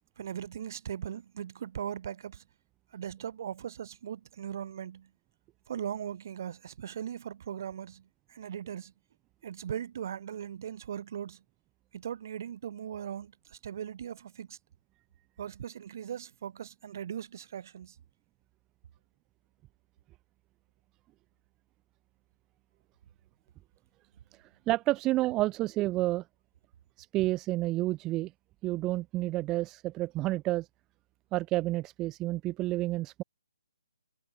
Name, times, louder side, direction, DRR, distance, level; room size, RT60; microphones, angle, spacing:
voice 1, 0.2-2.4 2.9-5.1 5.7-8.9 9.4-11.4 11.9-14.6 15.4-18.0, right 9 dB, 45° right, 4.6 m, -39 dB
voice 2, 24.7-26.2 27.0-28.3 28.6-30.7 31.3-33.2, right 17 dB, 15° right, 1.6 m, -30 dB
hypercardioid pair, 155°, 2 cm